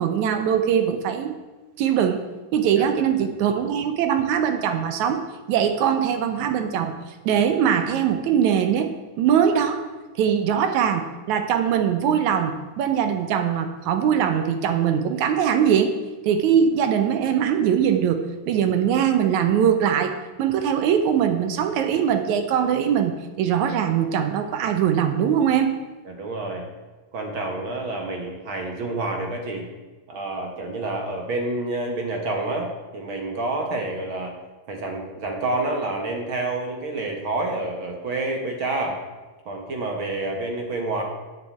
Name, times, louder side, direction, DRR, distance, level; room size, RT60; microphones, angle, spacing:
voice 1, 0.0-1.4 1.8-2.2 2.5-5.2 5.5-9.8 10.2-15.9 16.2-25.8, right 8 dB, 75° right, 7 dB, 2.0 m, -21 dB
voice 2, 26.1-26.6 27.1-29.7 30.1-34.3 34.7-39.0 39.5-41.0, right 2 dB, 50° right, 2 dB, 1.8 m, -28 dB
9.2 x 6.7 x 8.5 m, 1.2 s
omnidirectional pair, 3.7 m